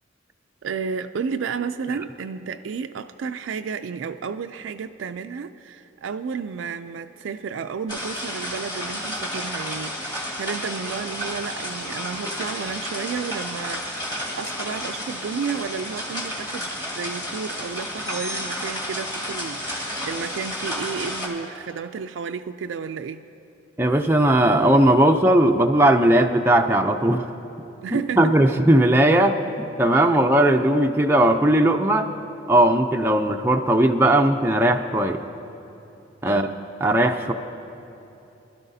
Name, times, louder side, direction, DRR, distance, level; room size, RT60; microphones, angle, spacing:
voice 1, 0.6-23.2 27.8-28.3 36.2-36.5, right 6 dB, 80° right, 7 dB, 0.4 m, -32 dB
sound 1, 7.9-21.3, equal, 20° left, 1.7 m, -31 dB
sound 2, 18.1-19.6, left 2 dB, 75° left, 2.2 m, -38 dB
voice 2, 23.8-27.3 27.9-32.1 32.5-35.2 36.2-36.5 36.8-37.3, right 1 dB, 10° right, 3 dB, 0.4 m, -18 dB
25.0 x 12.0 x 2.7 m, 2.9 s
head